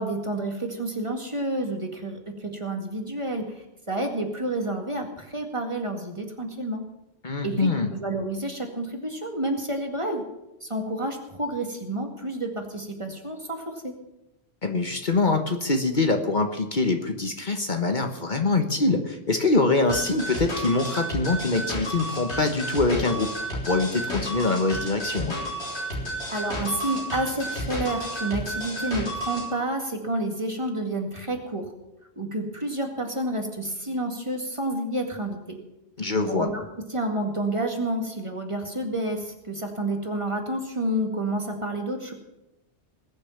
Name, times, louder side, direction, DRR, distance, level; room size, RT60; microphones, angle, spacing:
voice 1, 0.0-6.8 7.4-10.2 10.6-13.9 26.3-31.7 32.2-35.6 36.3-42.1, right 1 dB, 30° right, 3 dB, 2.1 m, -29 dB
voice 2, 7.2-7.9 14.6-23.3 23.6-25.4 36.0-36.5, left 3 dB, 45° left, 5 dB, 1.4 m, -24 dB
sound 1, 19.9-29.5, right 1 dB, 90° left, 4.3 m, -32 dB
20.5 x 7.0 x 7.2 m, 0.94 s
omnidirectional pair, 1.1 m